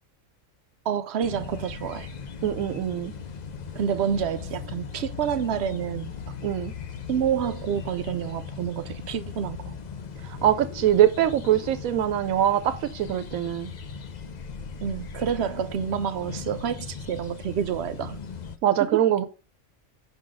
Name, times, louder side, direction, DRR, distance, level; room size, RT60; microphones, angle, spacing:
voice 1, 0.9-2.1 3.8-6.3 7.1-9.7 14.8-18.2 18.9-19.0, right 8 dB, 65° right, 0.7 m, -28 dB
sound 1, 1.2-18.6, left 6 dB, 50° left, 0.5 m, -38 dB
voice 2, 2.4-3.1 6.4-6.7 10.2-13.7 18.6-19.2, right 11 dB, 80° right, 1.0 m, -23 dB
5.9 x 3.9 x 4.8 m
omnidirectional pair, 1.4 m